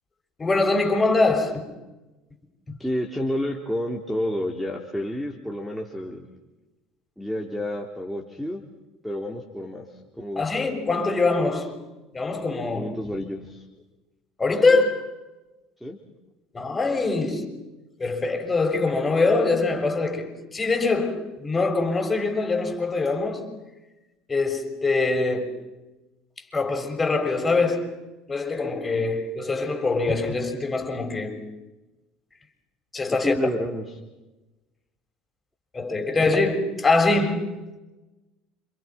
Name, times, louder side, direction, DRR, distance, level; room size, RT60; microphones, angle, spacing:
voice 1, 0.4-1.6 2.7-2.8 10.4-11.8 12.1-12.9 14.4-15.1 16.5-17.5 18.0-23.5 24.3-25.6 26.5-28.0 28.3-31.4 32.9-33.4 35.7-37.6, left 3 dB, 20° left, 6.9 m, -23 dB
voice 2, 2.8-6.3 7.2-8.6 9.0-9.9 10.1-10.5 12.7-13.6 15.8-16.0 33.1-33.9, left 1 dB, ahead, 3.9 m, -30 dB
30.0 x 28.0 x 6.1 m
hypercardioid pair, 75°, 0 cm